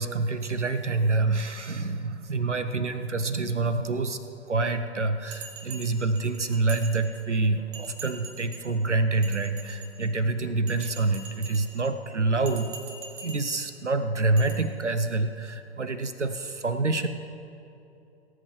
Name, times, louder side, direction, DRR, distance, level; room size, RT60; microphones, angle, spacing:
voice 1, 0.0-4.2 4.5-12.7 13.1-17.1, right 3 dB, 90° right, 10 dB, 0.8 m, -27 dB
Bell, 5.3-7.4 7.7-8.7 9.1-10.2 10.7-11.9 12.4-13.7 14.4-14.5, right 4 dB, 45° right, 2.2 m, -43 dB
17.5 x 8.0 x 4.7 m, 2.8 s
figure-of-eight pair, 115°, 34 cm